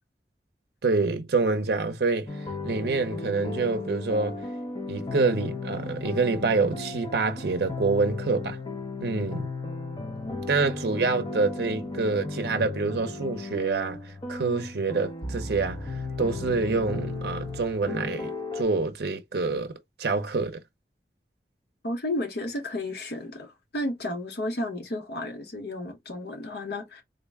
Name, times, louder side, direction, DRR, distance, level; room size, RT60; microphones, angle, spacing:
voice 1, 0.8-2.3 2.6-4.4 4.9-8.6 9.0-9.5 10.5-15.8 16.2-19.7 20.0-20.6, right 3 dB, 65° right, 0.6 m, -26 dB
sound 1, 2.3-18.6, left 3 dB, 25° left, 0.6 m, -35 dB
voice 2, 21.8-27.0, left 1 dB, 65° left, 0.9 m, -32 dB
3.8 x 2.1 x 3.4 m
head